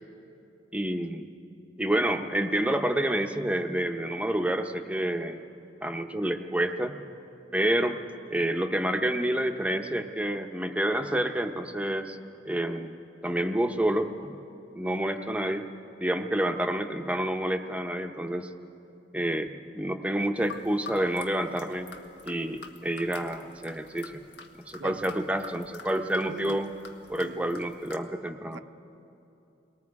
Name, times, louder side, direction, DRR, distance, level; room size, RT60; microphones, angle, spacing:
voice 1, 0.7-1.3 1.8-5.4 5.8-6.9 7.5-8.0 8.3-12.2 12.4-13.0 13.2-14.3 14.7-15.6 16.0-18.5 19.1-21.9 22.2-24.2 24.7-26.7 27.1-28.6, right 1 dB, 5° right, 0.8 m, -28 dB
sound 1, 20.4-28.0, left 4 dB, 75° left, 1.5 m, -46 dB
voice 2, 26.3-26.6 27.1-27.6 28.5-28.6, right 4 dB, 90° right, 0.5 m, -41 dB
29.0 x 20.5 x 4.8 m
head